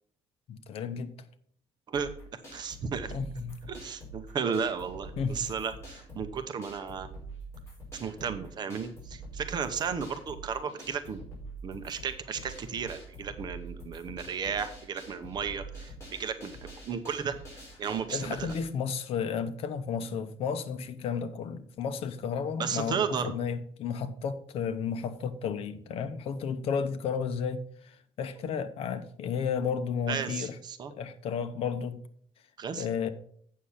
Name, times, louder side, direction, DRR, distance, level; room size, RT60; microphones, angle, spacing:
voice 1, 0.5-1.3 3.1-3.6 5.2-5.5 18.1-30.6 30.9-32.0 32.8-33.1, left 6 dB, 65° left, 0.9 m, -33 dB
sound 1, 1.9-18.6, right 2 dB, 25° left, 4.8 m, -45 dB
voice 2, 1.9-3.2 3.7-7.1 7.9-11.2 11.6-16.5 16.9-17.4 17.8-18.5 22.6-23.3 30.1-30.9 32.6-32.9, right 6 dB, 40° right, 0.8 m, -34 dB
8.5 x 6.5 x 5.6 m
cardioid pair, 155°, 11 cm